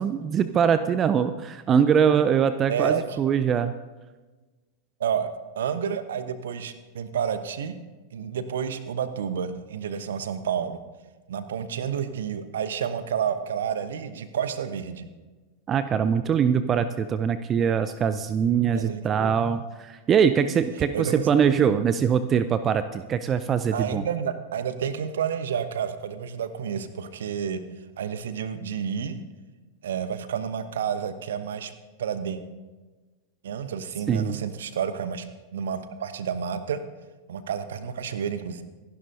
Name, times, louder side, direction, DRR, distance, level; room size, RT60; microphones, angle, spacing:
voice 1, 0.0-3.7 15.7-24.0 34.1-34.4, right 7 dB, 25° right, 12 dB, 0.5 m, -23 dB
voice 2, 2.7-3.2 5.0-5.3 5.6-7.8 8.1-10.8 11.3-15.1 18.7-19.4 20.9-21.3 23.7-27.6 28.0-29.2 29.8-31.7 32.0-32.4 33.4-35.3 35.5-36.8 37.3-38.6, right 8 dB, 60° right, 12 dB, 1.0 m, -30 dB
26.0 x 11.5 x 2.8 m, 1.3 s
figure-of-eight pair, 90°, 0 cm